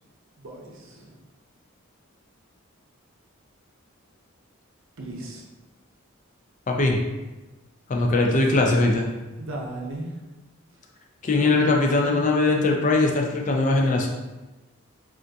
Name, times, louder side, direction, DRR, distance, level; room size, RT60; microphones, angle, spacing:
voice 1, 0.4-1.2 5.0-5.5 9.4-10.1 11.2-11.6 12.0-12.2, right 1 dB, 65° right, -1 dB, 0.6 m, -36 dB
voice 2, 6.7-7.0 7.9-9.1 11.2-14.1, left 2 dB, 35° left, 1 dB, 0.4 m, -21 dB
3.4 x 2.5 x 2.6 m, 1.1 s
head